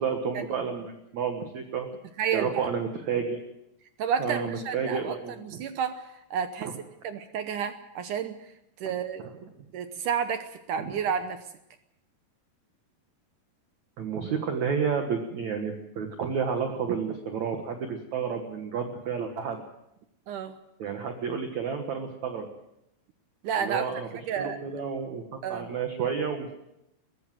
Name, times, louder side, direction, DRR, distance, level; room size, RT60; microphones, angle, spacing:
voice 1, 0.0-1.9 2.3-3.4 4.2-5.6 10.8-10.9 14.0-19.6 20.8-22.5 23.6-24.1 24.4-25.2 25.5-26.5, right 6 dB, 55° right, 5 dB, 2.3 m, -30 dB
voice 2, 2.2-2.7 4.0-6.7 7.0-8.5 8.8-9.3 9.7-11.4 20.3-20.6 23.4-23.9 24.3-24.6 25.4-25.7, right 7 dB, 75° right, 9 dB, 1.9 m, -31 dB
22.0 x 15.5 x 7.6 m, 0.83 s
omnidirectional pair, 4.8 m